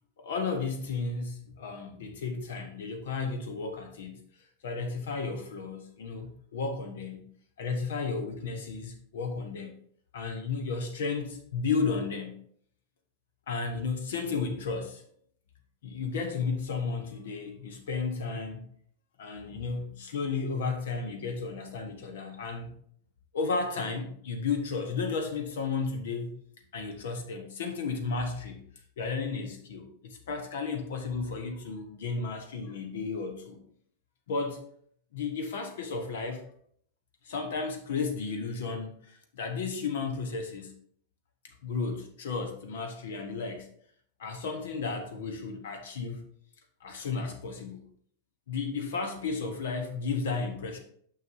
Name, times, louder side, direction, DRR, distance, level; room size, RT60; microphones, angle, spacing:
voice 1, 0.2-4.2 4.6-7.2 7.6-9.8 10.1-12.4 13.5-15.0 15.8-18.7 19.2-22.8 23.3-26.4 26.7-28.6 29.0-33.6 34.3-34.6 35.1-36.4 37.2-40.7 41.4-43.7 44.2-46.2 46.8-47.8 48.5-50.8, left 4 dB, 60° left, 6 dB, 1.0 m, -33 dB
9.4 x 5.9 x 2.7 m, 0.62 s
figure-of-eight pair, 90°, 0 cm